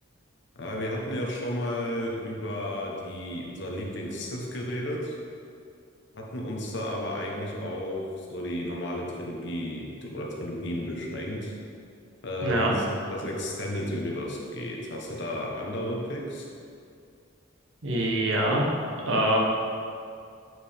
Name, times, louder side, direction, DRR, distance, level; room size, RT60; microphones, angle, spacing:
voice 1, 0.5-5.2 6.1-11.5 12.2-16.4, equal, 60° left, -2 dB, 1.1 m, -33 dB
voice 2, 12.4-12.7 17.8-18.7 19.1-19.4, right 1 dB, 70° right, -2 dB, 1.1 m, -24 dB
7.7 x 4.8 x 3.5 m, 2.3 s
head